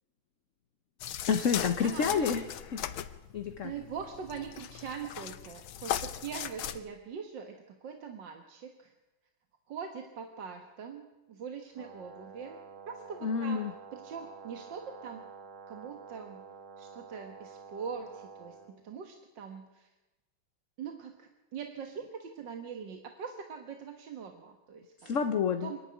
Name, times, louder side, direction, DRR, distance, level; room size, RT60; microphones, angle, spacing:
sound 1, 1.0-6.8, left 11 dB, 75° left, 1.6 m, -38 dB
voice 1, 1.3-2.4 2.7-2.8 3.3-3.7 13.2-13.7 25.0-25.7, left 6 dB, 45° left, 7 dB, 1.1 m, -29 dB
voice 2, 1.8-2.2 3.6-8.9 9.7-12.6 12.9-13.6 13.9-15.2 15.7-16.5 16.8-18.6 18.8-19.9 20.8-25.1 25.6-25.8, right 6 dB, 60° right, 4 dB, 2.0 m, -42 dB
Brass instrument, 11.7-18.7, right 5 dB, 75° right, 3.3 m, -49 dB
26.0 x 11.0 x 9.7 m, 1.1 s
omnidirectional pair, 2.3 m